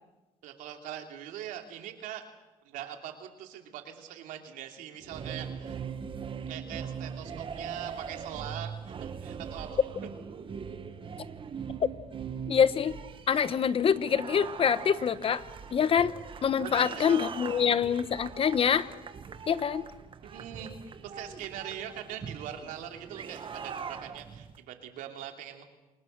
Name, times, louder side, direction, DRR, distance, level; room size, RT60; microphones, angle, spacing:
voice 1, 0.4-2.2 2.6-5.8 6.5-9.7 16.6-17.3 20.2-20.7 21.0-25.6, right 10 dB, 80° right, 4 dB, 3.0 m, -42 dB
sound 1, 5.0-24.6, right 6 dB, 40° right, 1.6 m, -41 dB
voice 2, 12.5-13.0 13.3-15.4 15.7-16.1 16.4-18.9 19.5-19.8, left 7 dB, 45° left, 15 dB, 1.0 m, -25 dB
27.5 x 19.0 x 6.7 m, 1.1 s
cardioid pair, 90°, 13 cm